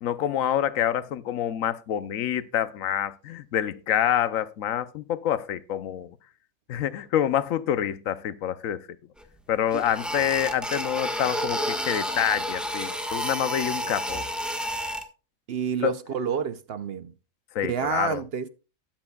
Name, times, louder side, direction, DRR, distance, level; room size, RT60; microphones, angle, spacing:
voice 1, 0.0-6.2 6.7-8.8 9.5-14.3 15.8-15.9 17.5-18.2, left 10 dB, 80° left, 1.1 m, -27 dB
sound 1, 9.2-9.3 9.7-15.0, equal, ahead, 1.3 m, -30 dB
voice 2, 15.5-17.1 17.6-18.5, right 7 dB, 55° right, 0.8 m, -29 dB
13.0 x 11.0 x 2.3 m
omnidirectional pair, 1.4 m